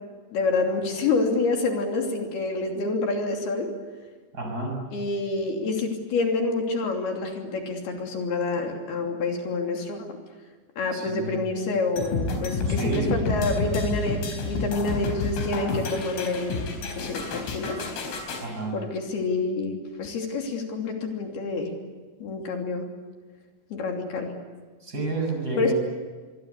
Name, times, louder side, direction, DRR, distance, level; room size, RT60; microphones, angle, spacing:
voice 1, 0.3-3.7 4.9-10.2 10.8-16.7 17.0-17.9 18.7-21.7 22.2-22.9 23.7-24.3 25.6-25.7, left 3 dB, 55° left, 2 dB, 4.5 m, -27 dB
voice 2, 4.3-4.8 10.9-11.4 12.7-13.1 18.4-18.8 24.8-25.7, right 2 dB, 20° right, 3 dB, 6.9 m, -30 dB
sound 1, 12.0-18.5, left 3 dB, 75° left, 6.5 m, -29 dB
26.0 x 23.0 x 8.4 m, 1.4 s
omnidirectional pair, 5.9 m